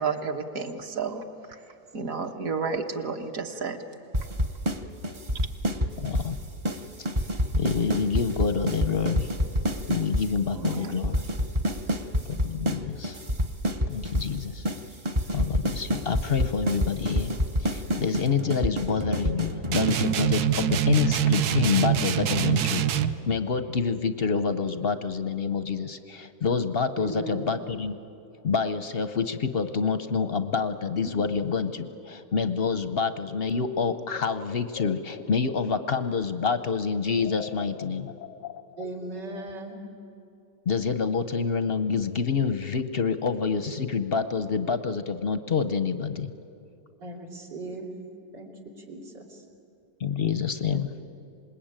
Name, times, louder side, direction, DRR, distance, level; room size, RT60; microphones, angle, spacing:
voice 1, 0.0-1.6 1.9-3.8 10.5-10.9, right 5 dB, 55° right, 4 dB, 1.7 m, -31 dB
sound 1, 4.1-4.8 5.0-6.3 6.6-6.8 7.1-10.3 10.6-10.8 11.0-12.8 13.0-14.3 14.6-14.8 15.1-20.1, equal, 30° right, 0.5 m, -27 dB
voice 2, 6.0-6.4 7.6-9.3 9.9-11.3 12.3-13.2 13.9-14.6 15.3-17.3 17.6-28.0 28.4-38.1 40.7-46.3 50.0-51.0, left 5 dB, 50° left, 11 dB, 0.7 m, -27 dB
sound 2, 19.7-23.2, right 9 dB, 70° right, 1.3 m, -24 dB
voice 3, 27.0-27.5 31.0-31.1 38.8-39.8 47.0-47.9 48.3-48.5 48.8-49.4 50.7-50.8, right 3 dB, 85° right, -1 dB, 3.8 m, -38 dB
sound 3, 33.3-36.5 36.8-39.8, left 11 dB, 90° left, 1.4 m, -44 dB
26.5 x 20.5 x 8.9 m, 2.7 s
omnidirectional pair, 1.8 m